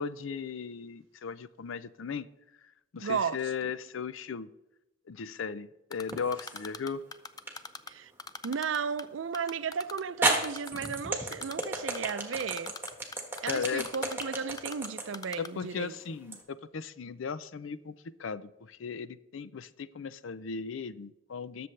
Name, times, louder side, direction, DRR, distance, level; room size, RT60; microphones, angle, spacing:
voice 1, 0.0-2.3 2.9-4.5 5.1-7.0 13.4-13.9 15.4-21.7, left 5 dB, 80° left, 0.5 m, -37 dB
voice 2, 3.0-3.7 7.9-8.1 8.4-12.8 13.4-15.9, right 6 dB, 75° right, 0.5 m, -34 dB
Typing, 5.9-7.9 8.2-9.0 9.3-11.0 11.3-11.7 11.9-14.9 15.1-15.5, left 4 dB, 20° left, 0.4 m, -41 dB
sound 1, 6.1-6.7 7.5-7.6 9.5-9.6 10.2-16.4, right 2 dB, 10° right, 1.4 m, -32 dB
20.0 x 7.0 x 3.3 m
head